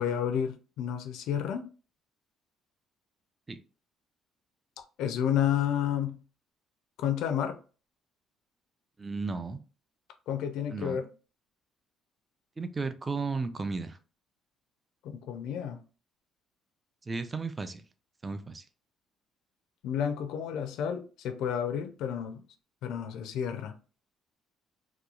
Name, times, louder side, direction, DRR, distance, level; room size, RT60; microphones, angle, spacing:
voice 1, 0.0-1.7 5.0-6.2 7.0-7.6 10.3-11.1 15.0-15.8 19.8-22.4 22.8-23.7, left 9 dB, 80° left, 0.4 m, -31 dB
voice 2, 9.0-9.6 10.7-11.0 12.6-14.0 17.1-17.8 18.2-18.6, right 4 dB, 20° right, 0.3 m, -34 dB
2.9 x 2.2 x 2.3 m
cardioid pair, 130°, 0 cm